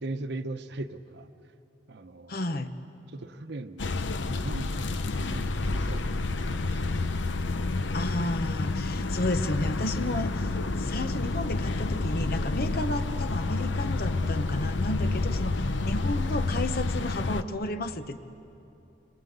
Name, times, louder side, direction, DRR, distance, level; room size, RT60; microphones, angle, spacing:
voice 1, 0.0-1.3 1.9-2.6 3.1-3.9 4.3-6.9 15.3-15.4, right 2 dB, 65° right, 9 dB, 0.9 m, -39 dB
voice 2, 2.3-2.7 7.9-18.2, left 1 dB, 55° left, 9 dB, 1.0 m, -32 dB
sound 1, 3.8-17.4, left 2 dB, 80° left, 0.8 m, -29 dB
27.5 x 24.0 x 8.1 m, 2.8 s
head